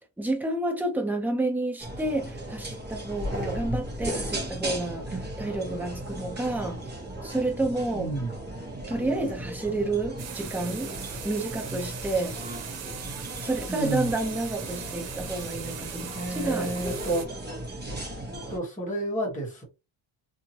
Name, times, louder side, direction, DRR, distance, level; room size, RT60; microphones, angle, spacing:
voice 1, 0.2-6.8 7.2-8.1 8.9-11.0 11.2-12.4 13.4-16.7, right 2 dB, 5° right, 0.4 m, -30 dB
sound 1, 1.8-18.6, right 1 dB, 20° right, 1.0 m, -36 dB
voice 2, 7.9-8.5 13.7-14.1 16.1-17.3 18.5-19.6, right 2 dB, 15° left, 1.2 m, -30 dB
sound 2, 10.2-17.2, right 8 dB, 90° right, 0.8 m, -40 dB
2.8 x 2.7 x 2.8 m
cardioid pair, 165°, 46 cm